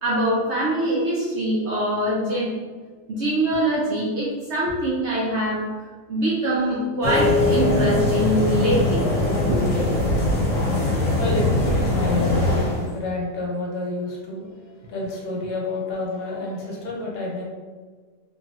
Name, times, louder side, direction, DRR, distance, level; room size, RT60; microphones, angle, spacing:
voice 1, 0.0-2.5 3.1-5.7 6.1-9.0 9.5-9.6, right 1 dB, 65° right, -7 dB, 0.7 m, -23 dB
sound 1, 7.0-12.9, left 2 dB, 60° left, 1.2 m, -21 dB
voice 2, 11.2-17.4, left 2 dB, 80° left, -4 dB, 1.4 m, -29 dB
2.9 x 2.9 x 2.3 m, 1.5 s
omnidirectional pair, 1.7 m